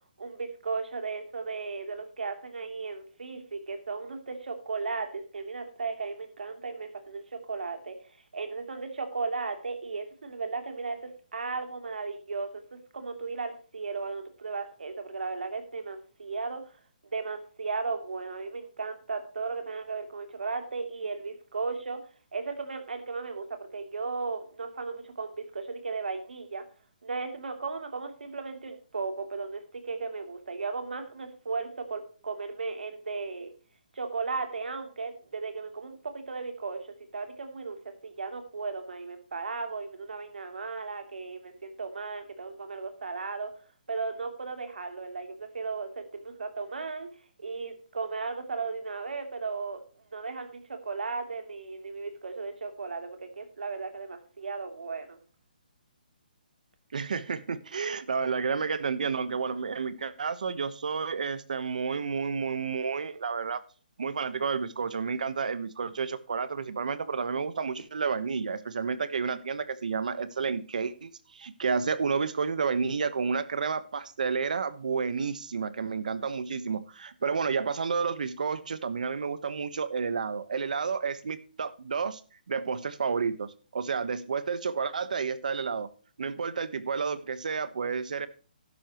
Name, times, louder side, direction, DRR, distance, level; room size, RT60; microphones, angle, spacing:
voice 1, 0.2-16.7 17.1-22.0 22.3-26.6 27.0-33.5 33.9-43.5 43.9-47.1 47.4-49.8 50.1-55.2, right 4 dB, 80° right, 6 dB, 3.0 m, -36 dB
voice 2, 56.9-63.6 64.0-82.2 82.5-85.9 86.2-88.3, right 5 dB, 55° right, 15 dB, 1.1 m, -31 dB
12.0 x 10.5 x 3.0 m, 0.37 s
hypercardioid pair, 180°, 5 cm